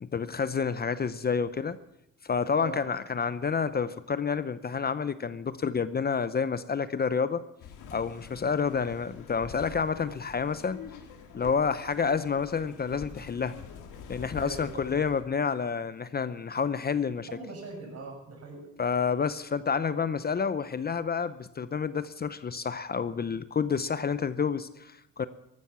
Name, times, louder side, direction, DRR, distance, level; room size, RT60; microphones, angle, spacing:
voice 1, 0.0-1.8 2.2-7.4 7.9-10.8 11.3-13.6 14.1-17.3 18.8-25.3, left 6 dB, 30° left, 14 dB, 0.7 m, -29 dB
sound 1, 7.6-15.2, left 6 dB, 85° left, 2.1 m, -46 dB
voice 2, 14.3-14.8 17.2-18.8, right 3 dB, 55° right, 2 dB, 6.5 m, -41 dB
15.5 x 12.5 x 6.1 m, 0.82 s
cardioid pair, 90°, 30 cm